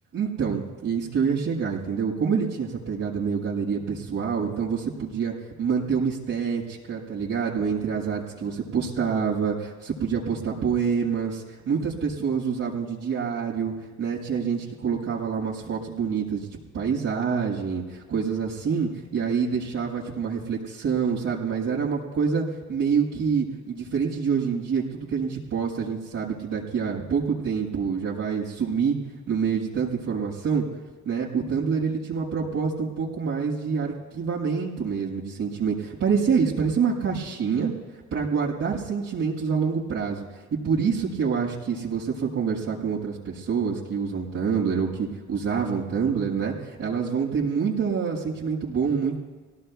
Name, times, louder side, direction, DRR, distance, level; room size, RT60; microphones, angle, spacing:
voice 1, 0.1-16.5 16.7-22.4 22.7-29.0 29.3-30.6 31.0-37.7 38.1-40.2 40.5-49.2, right 6 dB, 85° right, -7 dB, 5.4 m, -26 dB
24.0 x 18.0 x 2.4 m, 1.3 s
cardioid pair, 90°, 30 cm